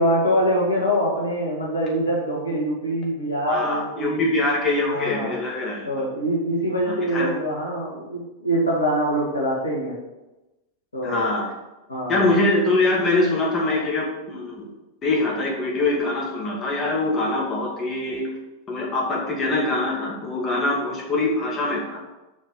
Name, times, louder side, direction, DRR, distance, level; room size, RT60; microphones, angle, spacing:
voice 1, 0.0-4.2 4.9-5.4 5.9-10.0 10.9-11.2 11.9-12.3, equal, 75° left, -3 dB, 1.8 m, -24 dB
voice 2, 3.5-5.8 6.9-7.3 11.0-11.5 12.1-14.7 15.0-18.3 18.7-22.0, left 2 dB, 25° left, -3 dB, 2.3 m, -23 dB
5.9 x 5.2 x 6.5 m, 1.0 s
figure-of-eight pair, 90°, 0 cm